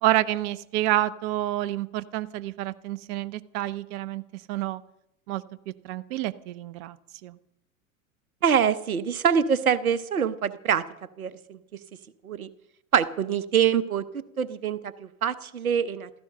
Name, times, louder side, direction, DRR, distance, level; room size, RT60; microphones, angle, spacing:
voice 1, 0.0-4.8 5.3-7.0 7.2-7.4, right 14 dB, 50° right, 16 dB, 0.9 m, -28 dB
voice 2, 8.4-10.8 11.2-11.6 12.2-12.5 12.9-14.0 14.4-16.1, right 8 dB, 90° right, 15 dB, 0.9 m, -24 dB
16.0 x 13.5 x 6.5 m, 0.80 s
hypercardioid pair, 90°, 42 cm